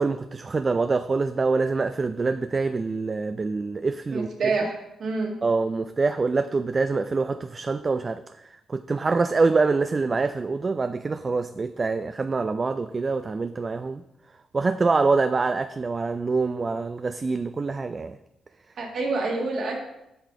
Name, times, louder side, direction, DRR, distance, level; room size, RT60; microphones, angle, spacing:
voice 1, 0.0-4.3 5.4-8.2 8.7-14.0 14.5-18.2, right 4 dB, 40° right, 10 dB, 0.3 m, -25 dB
voice 2, 4.1-5.3 18.8-19.8, right 3 dB, 60° right, 1 dB, 1.7 m, -27 dB
8.0 x 5.7 x 3.7 m, 0.86 s
hypercardioid pair, 45°, 0 cm